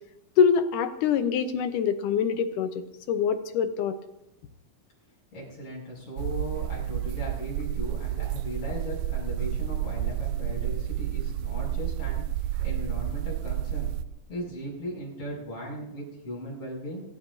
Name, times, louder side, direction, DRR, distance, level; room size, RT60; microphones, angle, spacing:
voice 1, 0.4-4.0, left 7 dB, 75° left, 9 dB, 2.2 m, -25 dB
voice 2, 5.3-12.2 12.6-13.9 14.3-17.0, equal, 45° left, -4 dB, 7.4 m, -37 dB
sound 1, 6.2-14.0, right 12 dB, 80° right, 2.2 m, -30 dB
26.0 x 14.0 x 2.7 m, 0.88 s
omnidirectional pair, 4.0 m